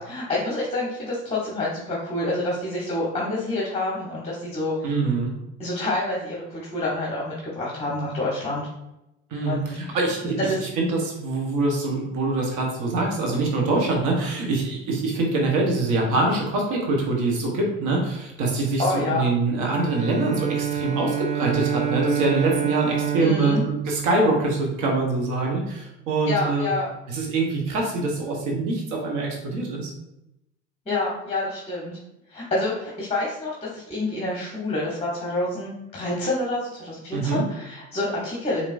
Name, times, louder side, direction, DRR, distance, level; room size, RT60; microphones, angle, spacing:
voice 1, 0.0-4.9 5.6-8.7 9.4-10.0 10.4-10.6 18.8-19.3 23.2-23.6 26.3-26.9 30.9-32.0 32.3-38.7, left 2 dB, 20° left, -5 dB, 1.2 m, -27 dB
voice 2, 4.8-5.3 9.3-10.3 10.6-26.7 27.1-29.9 37.1-37.4, right 2 dB, 60° right, 0 dB, 1.1 m, -24 dB
Bowed string instrument, 19.7-24.9, right 10 dB, 20° right, 0.3 m, -28 dB
4.5 x 2.9 x 2.6 m, 0.87 s
hypercardioid pair, 65°, 35 cm